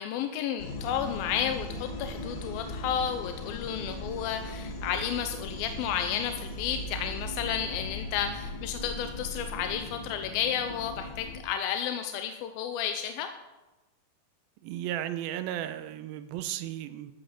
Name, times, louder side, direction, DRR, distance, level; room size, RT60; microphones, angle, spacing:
voice 1, 0.0-13.3, left 9 dB, 90° left, 7 dB, 2.5 m, -32 dB
sound 1, 0.6-11.4, left 1 dB, 55° left, 1.4 m, -39 dB
voice 2, 14.6-17.1, right 12 dB, 80° right, 11 dB, 2.6 m, -34 dB
14.0 x 7.9 x 6.8 m, 1.1 s
omnidirectional pair, 4.2 m